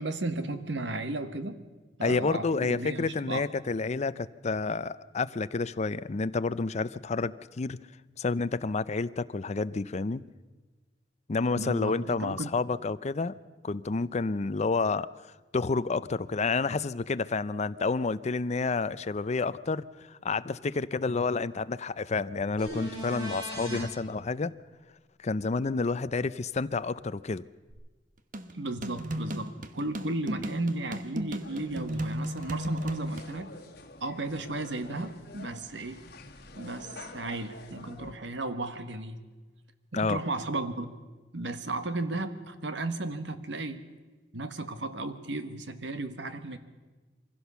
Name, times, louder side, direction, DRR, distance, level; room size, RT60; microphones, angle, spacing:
voice 1, 0.0-1.6 2.0-3.4 11.5-12.5 23.7-23.9 28.5-33.5 34.0-36.0 36.5-39.2 39.9-40.9 41.3-43.8 44.3-46.6, right 2 dB, 75° right, 11 dB, 1.4 m, -34 dB
voice 2, 2.0-7.8 8.2-10.2 11.3-13.4 13.6-15.1 15.5-24.5 25.2-27.4 39.9-40.2, left 4 dB, 40° left, 15 dB, 0.5 m, -29 dB
sound 1, 22.6-23.8 27.7-27.8, equal, 30° right, 7.1 m, -38 dB
sound 2, 28.3-33.3, right 1 dB, 50° right, 1.2 m, -35 dB
sound 3, 31.4-38.1, left 2 dB, 60° left, 1.8 m, -48 dB
23.5 x 16.0 x 6.9 m, 1.3 s
head